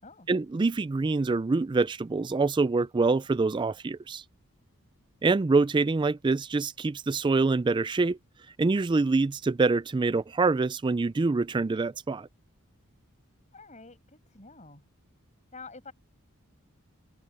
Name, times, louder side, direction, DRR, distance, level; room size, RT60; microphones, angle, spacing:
voice 1, 0.3-4.2 5.2-8.2 8.6-12.3, right 3 dB, 20° right, 0.3 m, -25 dB
voice 2, 13.5-14.8 15.5-15.9, left 4 dB, 35° left, 7.4 m, -48 dB
head